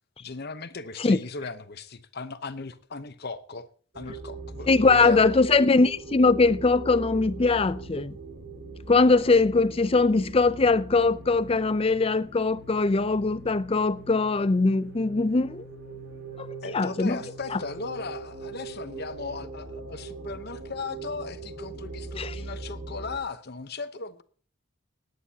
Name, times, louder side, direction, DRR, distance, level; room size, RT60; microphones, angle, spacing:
voice 1, 0.2-3.7 3.9-5.4 16.6-24.2, left 4 dB, 50° left, 0.9 m, -37 dB
sound 1, 3.9-23.2, right 3 dB, 55° right, 2.0 m, -41 dB
voice 2, 4.7-8.1 8.9-15.7 16.4-16.5 16.7-17.2 17.5-17.6 22.2-22.3, left 3 dB, 30° left, 0.5 m, -21 dB
19.5 x 9.6 x 2.8 m
head